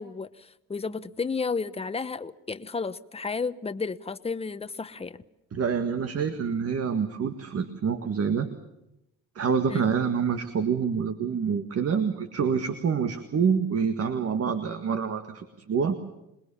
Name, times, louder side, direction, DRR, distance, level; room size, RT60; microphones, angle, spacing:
voice 1, 0.0-5.2 9.7-9.9, left 4 dB, 20° left, 12 dB, 1.0 m, -32 dB
voice 2, 5.5-8.5 9.4-16.0, right 6 dB, 50° right, 8 dB, 1.8 m, -27 dB
27.0 x 20.5 x 7.1 m, 0.89 s
cardioid pair, 90°, 30 cm